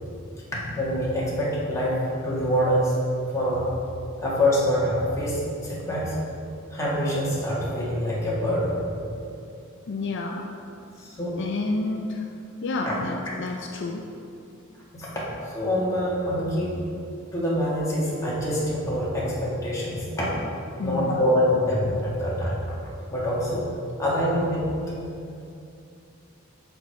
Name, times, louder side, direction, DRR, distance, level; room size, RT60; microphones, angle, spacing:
voice 1, 0.7-2.9 3.3-3.7 4.2-6.1 6.7-8.9 11.0-11.3 12.8-12.9 14.9-16.8 17.3-20.3 20.8-22.8 23.1-23.6 24.0-24.7, equal, 15° left, -7 dB, 1.5 m, -25 dB
voice 2, 9.9-10.4 11.4-12.3 12.6-14.0 20.8-21.3, left 2 dB, 55° left, 1 dB, 0.4 m, -29 dB
6.3 x 5.2 x 4.6 m, 2.6 s
head